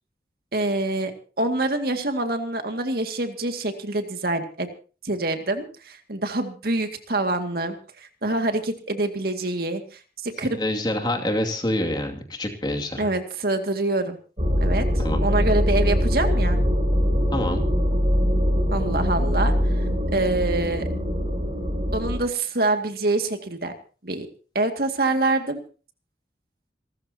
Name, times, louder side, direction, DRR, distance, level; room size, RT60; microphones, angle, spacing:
voice 1, 0.5-1.1 1.4-4.7 5.0-7.8 8.2-10.6 13.0-14.2 14.6-14.9 15.2-16.6 18.7-19.7 20.1-20.9 21.9-23.7 24.0-24.3 24.5-25.6, right 2 dB, 55° right, 6 dB, 2.2 m, -25 dB
voice 2, 10.4-13.1 15.0-15.2 17.3-17.6, left 1 dB, 25° left, 3 dB, 2.5 m, -26 dB
sound 1, 14.4-22.2, equal, 30° right, 6.5 m, -22 dB
27.5 x 14.0 x 2.9 m, 0.37 s
head